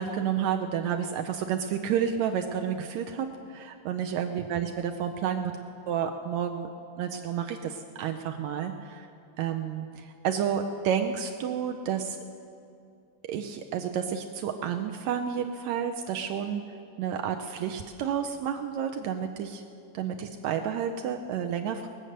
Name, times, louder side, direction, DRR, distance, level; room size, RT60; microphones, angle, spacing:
voice 1, 0.0-5.5 5.9-6.7 7.0-9.1 9.4-12.2 13.2-16.6 17.0-19.6 19.9-21.9, right 8 dB, 75° right, 5 dB, 1.7 m, -30 dB
21.0 x 7.8 x 6.5 m, 2.6 s
omnidirectional pair, 3.6 m